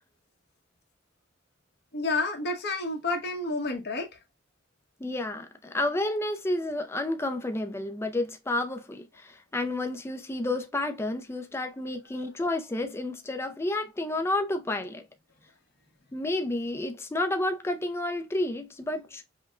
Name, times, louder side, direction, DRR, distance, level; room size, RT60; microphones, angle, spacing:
voice 1, 1.9-4.1, left 2 dB, 55° left, 1.2 m, -29 dB
voice 2, 5.0-15.1 16.1-19.2, left 2 dB, 15° left, 0.4 m, -30 dB
5.6 x 2.2 x 2.4 m
head